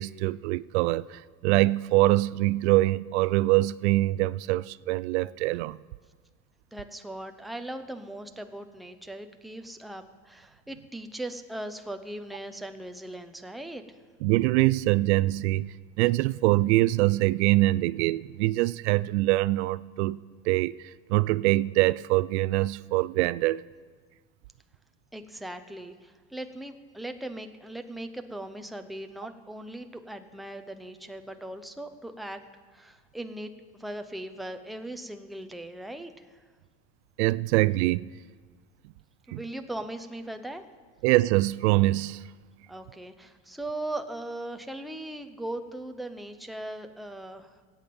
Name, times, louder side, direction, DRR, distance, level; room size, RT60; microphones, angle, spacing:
voice 1, 0.0-5.8 14.2-20.2 20.4-20.7 21.1-23.6 37.2-38.1 39.3-39.4 41.0-42.2, right 19 dB, 85° right, 0.5 m, -24 dB
voice 2, 6.7-13.8 25.1-32.4 32.7-36.4 39.3-40.6 42.7-47.5, right 1 dB, ahead, 0.7 m, -39 dB
23.5 x 8.8 x 5.3 m
supercardioid pair, 140°, 33 cm